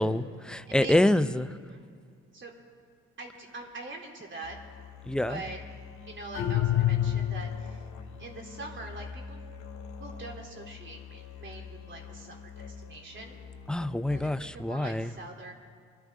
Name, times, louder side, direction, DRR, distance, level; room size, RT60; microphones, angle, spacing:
voice 1, 0.0-1.5 5.1-5.4 13.7-15.1, left 1 dB, 5° left, 12 dB, 0.5 m, -26 dB
voice 2, 0.7-1.0 1.6-1.9 2.3-2.5 3.2-4.6 5.3-5.6 6.1-7.8 8.2-9.4 10.0-13.4 14.1-15.5, right 3 dB, 40° right, 1 dB, 3.3 m, -43 dB
Musical instrument, 4.4-14.6, left 6 dB, 65° left, 2.1 m, -45 dB
sound 1, 6.3-7.8, left 12 dB, 85° left, 2.1 m, -27 dB
25.5 x 14.0 x 3.7 m, 2.1 s
cardioid pair, 90°, 30 cm